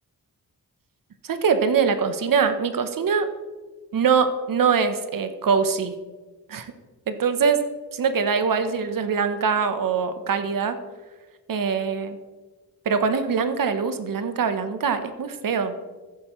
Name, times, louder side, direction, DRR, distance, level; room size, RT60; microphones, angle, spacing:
voice 1, 1.2-3.3 3.9-6.0 6.5-6.7 7.1-7.6 8.0-10.8 11.5-12.2 12.9-15.7, right 6 dB, 55° right, 9 dB, 0.9 m, -23 dB
14.5 x 7.4 x 3.1 m, 1.3 s
cardioid pair, 80°, 39 cm